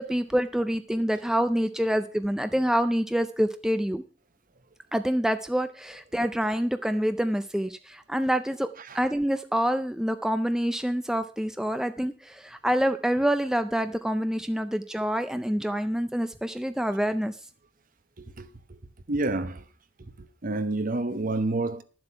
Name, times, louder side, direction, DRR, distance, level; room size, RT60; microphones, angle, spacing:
voice 1, 0.1-4.0 4.9-8.7 8.9-17.4, equal, 5° right, 0.4 m, -26 dB
voice 2, 18.2-18.8 19.1-19.6 20.0-21.8, right 2 dB, 45° right, 0.9 m, -30 dB
11.5 x 7.6 x 5.8 m
head